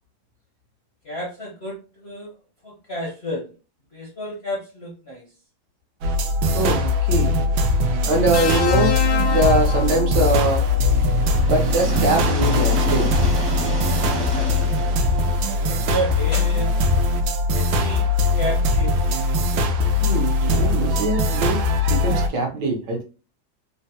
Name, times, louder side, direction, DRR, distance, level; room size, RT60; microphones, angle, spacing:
voice 1, 1.0-2.4 2.6-3.5 3.9-5.3 14.1-15.1 15.4-16.8 17.5-19.2, right 1 dB, 50° left, -3 dB, 0.7 m, -32 dB
sound 1, 6.0-22.3, left 2 dB, 85° right, 1.3 m, -20 dB
voice 2, 6.5-7.4 8.1-8.9 9.3-10.6 11.4-13.1 20.0-21.6 21.9-23.0, right 2 dB, 70° right, 1 dB, 1.4 m, -22 dB
sound 2, 8.3-10.6 11.9-12.1, left 5 dB, 70° left, 1.0 m, -26 dB
sound 3, 10.4-16.3, right 1 dB, 50° right, 0.8 m, -30 dB
3.8 x 2.1 x 2.7 m, 0.33 s
omnidirectional pair, 2.1 m